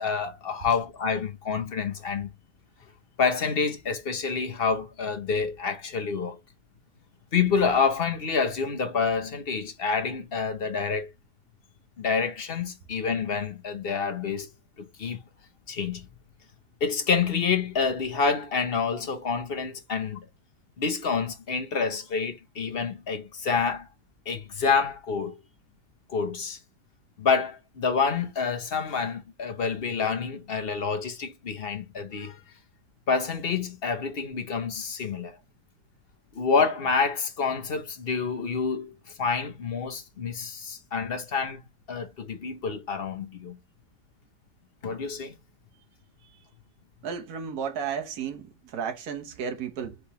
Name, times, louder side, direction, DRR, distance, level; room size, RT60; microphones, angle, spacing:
voice 1, 0.0-2.3 3.2-6.4 7.3-11.1 12.0-14.5 14.8-15.2 15.7-16.1 16.8-20.3 20.8-23.9 24.3-25.4 26.1-26.6 27.2-32.4 33.1-35.4 36.3-38.9 39.2-43.6 44.8-45.3, left 5 dB, 45° left, 0.8 m, -28 dB
voice 2, 47.0-50.0, right 7 dB, 65° right, 1.5 m, -33 dB
4.7 x 3.5 x 3.0 m
omnidirectional pair, 1.8 m